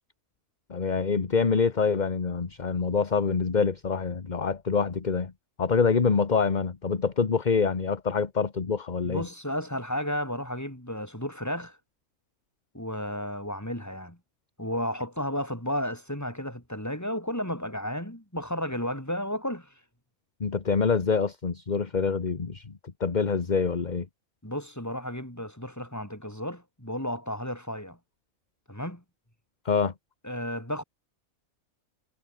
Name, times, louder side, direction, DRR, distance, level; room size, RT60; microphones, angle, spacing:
voice 1, 0.7-5.3 5.6-9.3 20.4-22.7 23.0-24.1 29.6-29.9, left 5 dB, 35° left, 1.3 m, -26 dB
voice 2, 9.0-11.8 12.7-14.2 14.6-19.7 24.4-28.0 28.7-29.0 30.2-30.8, equal, 10° left, 5.9 m, -33 dB
omnidirectional pair, 1.5 m